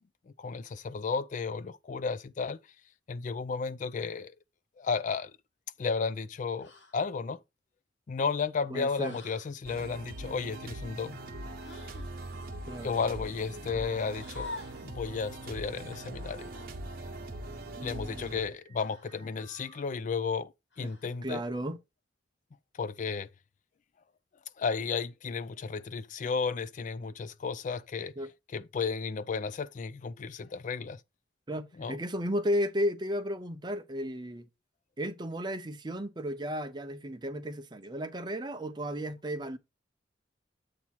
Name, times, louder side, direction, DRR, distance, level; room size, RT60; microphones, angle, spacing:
voice 1, 0.4-2.6 3.1-4.3 4.8-5.3 5.8-7.4 8.1-11.2 12.8-14.5 14.8-16.5 17.8-20.5 20.8-21.4 22.8-23.3 24.6-28.1 28.5-31.0 31.8-32.0, left 5 dB, 45° left, 0.3 m, -33 dB
sound 1, 6.6-7.0 9.0-9.5 11.6-12.1 13.9-14.9 16.5-16.7 18.8-19.3 20.7-21.2, left 3 dB, 80° left, 2.1 m, -46 dB
voice 2, 8.7-9.2 12.7-12.9 17.8-18.3 20.8-20.9 21.2-21.8 28.2-28.3 31.5-34.5 35.0-39.6, equal, 25° right, 0.7 m, -34 dB
sound 2, 9.6-19.8, right 1 dB, 55° right, 1.0 m, -42 dB
8.2 x 2.9 x 5.9 m
head